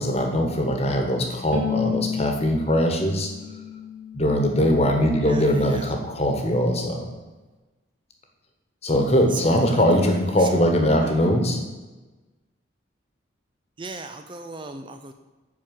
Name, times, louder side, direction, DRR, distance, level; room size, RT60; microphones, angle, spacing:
voice 1, 0.0-3.3 4.1-7.1 8.8-11.6, equal, 30° left, 3 dB, 1.4 m, -21 dB
Bowed string instrument, 1.5-4.7, left 6 dB, 80° right, 1.9 m, -31 dB
voice 2, 5.2-5.9 9.3-9.6 10.4-10.6 11.0-11.1 13.8-15.1, right 3 dB, 25° right, 7 dB, 0.4 m, -37 dB
10.5 x 4.5 x 7.6 m, 1.2 s
head